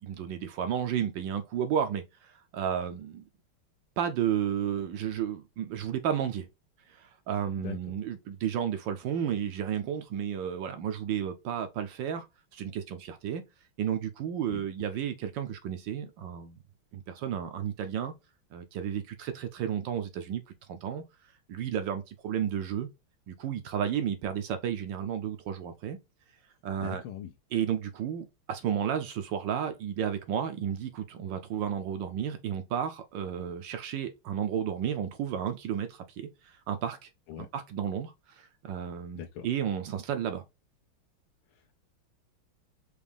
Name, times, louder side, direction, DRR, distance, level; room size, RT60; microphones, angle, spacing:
voice 1, 0.0-3.2 4.0-6.5 6.9-12.3 12.5-13.4 13.8-16.6 16.9-18.1 18.5-20.4 20.7-21.0 21.5-22.9 23.3-26.0 26.6-27.0 27.5-37.1 37.5-40.4, right 9 dB, 75° right, 1.1 m, -32 dB
voice 2, 26.8-27.3 37.3-37.5 39.1-39.5 41.5-41.7, left 10 dB, 80° left, 1.4 m, -41 dB
5.0 x 2.5 x 3.3 m
omnidirectional pair, 2.3 m